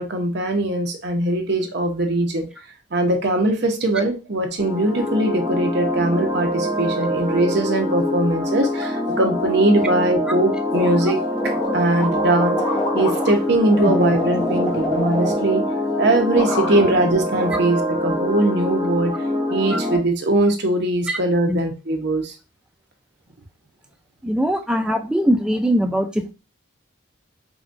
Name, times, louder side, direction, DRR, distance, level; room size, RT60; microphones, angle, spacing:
voice 1, 0.0-2.5 2.9-11.2 11.4-12.6 12.9-15.6 16.0-19.1 19.5-22.3, right 1 dB, 55° right, 4 dB, 0.7 m, -21 dB
sound 1, 4.6-20.0, equal, 25° right, 0.8 m, -25 dB
sound 2, 10.7-16.0 16.3-17.0 17.4-18.2, left 2 dB, 25° left, 1.1 m, -28 dB
voice 2, 24.2-26.3, equal, 5° right, 5 dB, 0.3 m, -21 dB
4.8 x 2.2 x 2.5 m, 0.30 s
head